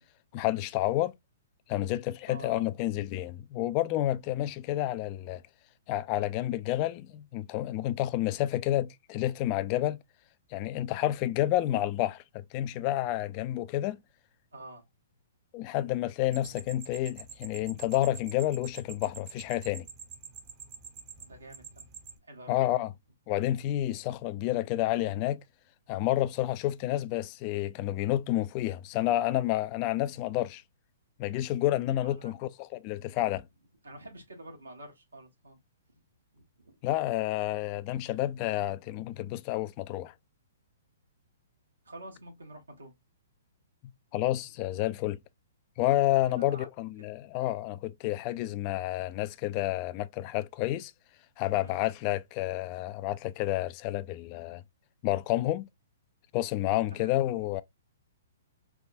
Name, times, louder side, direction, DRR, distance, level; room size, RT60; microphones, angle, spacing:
voice 1, 0.3-1.1 1.7-5.4 5.9-10.0 10.5-14.0 15.5-19.9 22.5-22.9 23.3-25.4 25.9-30.6 31.2-33.5 36.8-40.1 44.1-45.2 45.8-50.9 51.4-54.6 55.0-55.7 56.3-57.6, left 14 dB, 35° left, 0.3 m, -30 dB
voice 2, 2.3-2.7 14.5-14.8 21.2-21.9 22.2-22.6 32.0-32.4 32.9-33.1 33.8-35.6 36.3-36.8 41.8-42.9 46.3-46.7 51.6-51.8 56.9-57.2, right 1 dB, 80° right, 1.2 m, -48 dB
sound 1, 16.3-22.2, right 7 dB, 35° right, 0.8 m, -47 dB
3.4 x 2.2 x 2.6 m
figure-of-eight pair, 115°, 0 cm